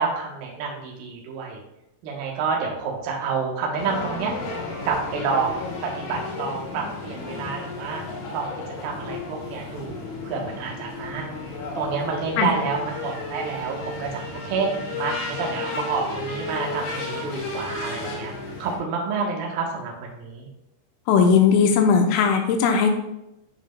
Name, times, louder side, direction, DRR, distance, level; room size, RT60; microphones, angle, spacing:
voice 1, 0.0-1.6 2.0-4.3 4.9-8.0 8.3-8.5 8.8-11.3 11.8-18.3 18.6-20.5, right 5 dB, 85° right, -1 dB, 2.0 m, -28 dB
sound 1, 3.8-18.8, left 3 dB, 65° left, 3.6 m, -33 dB
voice 2, 21.1-22.9, left 6 dB, 85° left, 4 dB, 3.2 m, -18 dB
9.6 x 5.4 x 2.2 m, 0.87 s
omnidirectional pair, 5.9 m